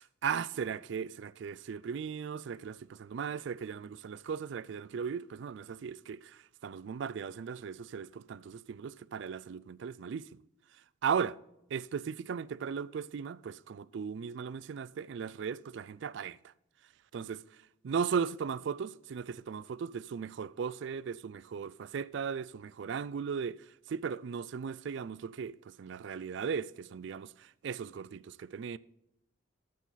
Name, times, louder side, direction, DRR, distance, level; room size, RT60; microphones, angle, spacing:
voice 1, 0.0-10.4 11.0-11.4 11.7-16.5 17.1-17.4 17.8-28.8, right 6 dB, 60° right, 0.3 m, -37 dB
12.0 x 8.4 x 4.0 m
head